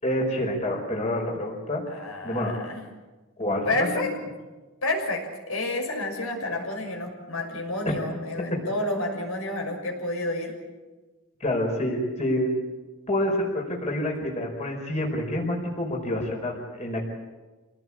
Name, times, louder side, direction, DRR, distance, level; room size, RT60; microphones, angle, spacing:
voice 1, 0.0-2.5 3.4-3.9 8.5-8.6 11.4-12.5 13.1-17.0, left 1 dB, 30° left, 0 dB, 4.9 m, -27 dB
voice 2, 1.9-2.8 3.7-4.1 4.8-10.5, left 2 dB, 75° left, 1 dB, 6.5 m, -30 dB
27.5 x 18.5 x 8.7 m, 1.2 s
head